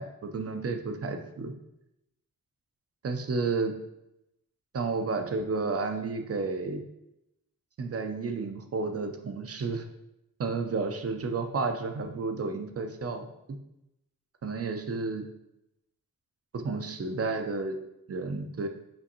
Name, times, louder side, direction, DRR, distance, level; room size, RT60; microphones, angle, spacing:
voice 1, 0.0-1.5 3.0-3.8 4.7-6.8 7.8-9.9 10.4-13.6 14.4-15.3 16.5-17.8 18.1-18.7, right 4 dB, 45° right, 6 dB, 0.5 m, -31 dB
5.1 x 2.5 x 2.8 m, 0.85 s
cardioid pair, 55°, 36 cm